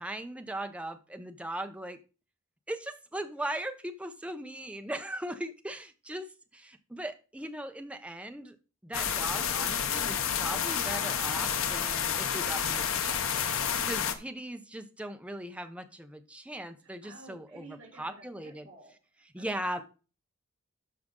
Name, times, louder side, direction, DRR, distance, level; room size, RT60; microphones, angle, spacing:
voice 1, 0.0-2.0 2.7-8.6 8.8-13.5 13.8-18.7 19.3-19.8, right 1 dB, 5° right, 7 dB, 0.8 m, -39 dB
sound 1, 8.9-14.1, left 8 dB, 85° left, 0.9 m, -30 dB
voice 2, 16.8-19.6, right 3 dB, 60° right, -5 dB, 4.2 m, -53 dB
12.5 x 5.1 x 3.8 m, 0.33 s
head